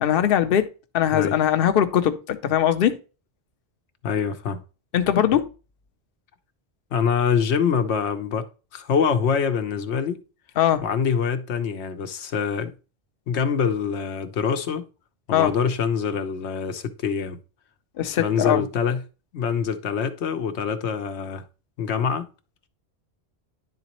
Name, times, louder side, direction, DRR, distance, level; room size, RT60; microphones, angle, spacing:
voice 1, 0.0-0.7 0.9-3.0 4.9-5.5 10.6-10.8 15.3-15.5 18.0-18.6, left 10 dB, 60° left, 0.8 m, -21 dB
voice 2, 1.1-1.4 4.0-4.6 6.9-10.2 10.8-12.7 13.3-14.9 15.3-17.4 18.2-19.0 19.3-21.4 21.8-22.3, left 6 dB, 85° left, 1.1 m, -25 dB
10.5 x 4.0 x 2.9 m
omnidirectional pair, 1.1 m